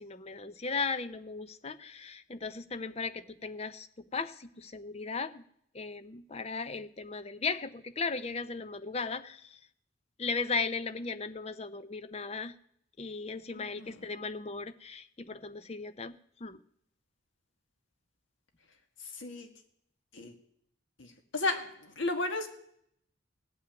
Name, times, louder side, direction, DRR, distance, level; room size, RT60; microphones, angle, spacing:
voice 1, 0.0-3.9 4.1-5.4 5.7-9.6 10.2-12.5 13.0-16.6, left 4 dB, 30° left, 12 dB, 0.6 m, -37 dB
voice 2, 13.5-13.9 19.1-19.5 20.1-20.3 21.0-22.5, left 2 dB, 70° left, 6 dB, 1.8 m, -34 dB
17.0 x 5.9 x 8.9 m, 0.70 s
head